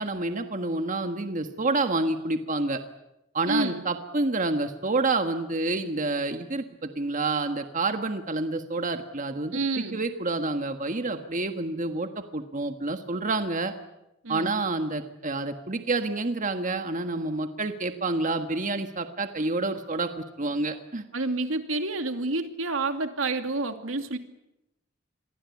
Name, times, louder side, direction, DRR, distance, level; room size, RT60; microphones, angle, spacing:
voice 1, 0.0-2.8 3.3-13.7 14.3-21.0, right 2 dB, 40° right, 7 dB, 1.6 m, -28 dB
voice 2, 3.5-3.8 9.5-10.0 14.2-14.5 21.1-24.2, right 2 dB, 85° right, 7 dB, 2.5 m, -28 dB
28.0 x 23.0 x 8.5 m, 0.90 s
head